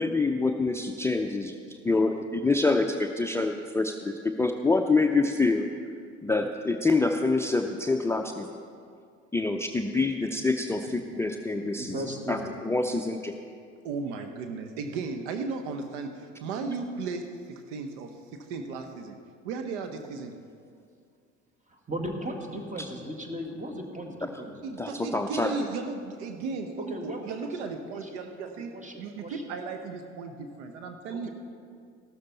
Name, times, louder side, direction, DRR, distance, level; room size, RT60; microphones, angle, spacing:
voice 1, 0.0-5.7 6.2-8.5 9.3-11.9 12.3-13.3 24.8-25.5, left 3 dB, 5° left, 5 dB, 0.6 m, -26 dB
voice 2, 11.8-12.5 21.7-24.6 26.9-29.5 31.1-31.3, equal, 20° right, 3 dB, 1.9 m, -37 dB
voice 3, 13.8-19.2 19.4-20.4 24.6-28.7 29.0-31.3, right 4 dB, 65° right, 6 dB, 1.0 m, -35 dB
14.0 x 13.0 x 4.1 m, 2.3 s
figure-of-eight pair, 60°, 37 cm